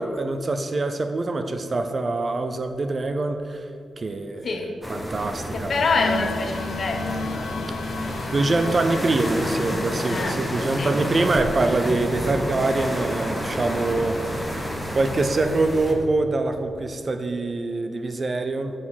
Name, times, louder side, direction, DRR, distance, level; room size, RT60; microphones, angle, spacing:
voice 1, 0.0-3.7 4.0-4.5 4.9-5.7 7.7-7.8 8.3-14.6 14.9-18.7, right 2 dB, 30° right, 8 dB, 0.5 m, -24 dB
voice 2, 4.4-4.7 5.5-7.5 10.1-10.9, left 3 dB, 40° left, 5 dB, 0.9 m, -26 dB
sound 1, 4.8-15.9, equal, ahead, 1.1 m, -30 dB
sound 2, 6.0-14.7, left 4 dB, 70° left, 0.6 m, -36 dB
9.2 x 6.4 x 5.7 m, 2.5 s
wide cardioid pair, 180°, 0 cm